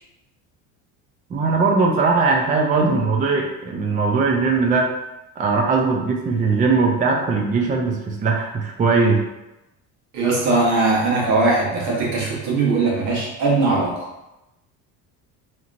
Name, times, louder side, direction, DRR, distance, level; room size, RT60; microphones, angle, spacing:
voice 1, 1.3-4.9 5.4-9.2, right 4 dB, 20° right, 1 dB, 0.4 m, -19 dB
voice 2, 10.1-14.0, right 3 dB, 75° right, -4 dB, 1.3 m, -20 dB
2.8 x 2.8 x 2.5 m, 0.95 s
supercardioid pair, 95°, 39 cm